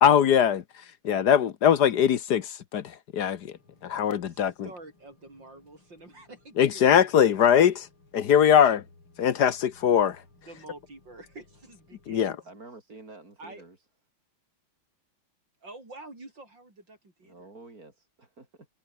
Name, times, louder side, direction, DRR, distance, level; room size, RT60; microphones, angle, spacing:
voice 1, 0.0-0.6 1.0-3.6 3.8-4.5 6.6-7.9 8.1-8.8 9.2-10.2 12.1-12.4, left 9 dB, 60° left, 1.4 m, -21 dB
sound 1, 3.5-12.3, left 3 dB, 75° left, 7.8 m, -60 dB
voice 2, 4.2-7.2 8.2-8.3 10.4-12.5 13.4-13.6 15.6-17.5, right 2 dB, 55° right, 8.4 m, -48 dB
voice 3, 12.4-13.8 17.2-18.7, right 3 dB, 40° right, 5.2 m, -49 dB
omnidirectional pair, 2.3 m